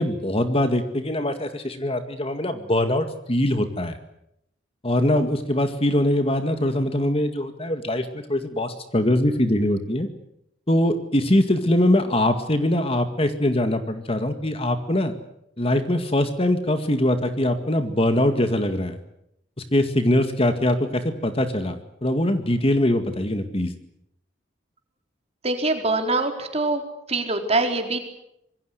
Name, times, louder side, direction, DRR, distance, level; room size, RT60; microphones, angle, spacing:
voice 1, 0.0-4.0 4.8-10.1 10.7-15.1 15.6-19.0 19.7-23.7, left 1 dB, 30° left, 8 dB, 2.0 m, -22 dB
voice 2, 25.4-26.8 27.1-28.0, right 2 dB, 35° right, 5 dB, 4.1 m, -23 dB
26.5 x 22.0 x 8.1 m, 0.78 s
head